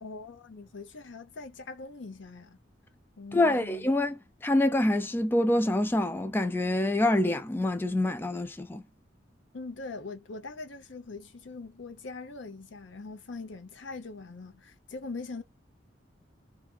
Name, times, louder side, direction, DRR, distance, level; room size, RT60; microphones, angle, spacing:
voice 1, 0.0-2.6 3.2-3.9 9.5-15.4, left 3 dB, 80° left, 0.7 m, -42 dB
voice 2, 3.3-8.8, left 1 dB, 10° left, 0.3 m, -26 dB
2.7 x 2.4 x 2.2 m
head